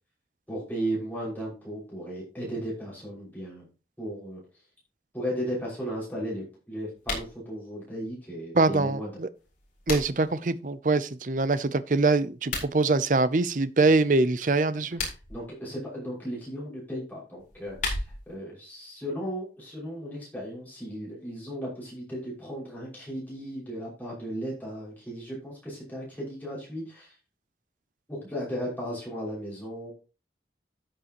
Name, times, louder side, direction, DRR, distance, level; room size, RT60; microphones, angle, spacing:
voice 1, 0.5-3.7 4.0-4.4 5.1-9.1 15.3-27.1 28.1-29.9, equal, 10° left, 5.8 m, -35 dB
sound 1, 7.0-7.3 9.4-10.3 12.4-12.7 14.8-15.4 17.4-18.4, left 3 dB, 45° left, 4.2 m, -34 dB
voice 2, 8.5-9.3 9.9-15.0, right 3 dB, 45° right, 0.6 m, -24 dB
13.5 x 7.4 x 3.0 m
head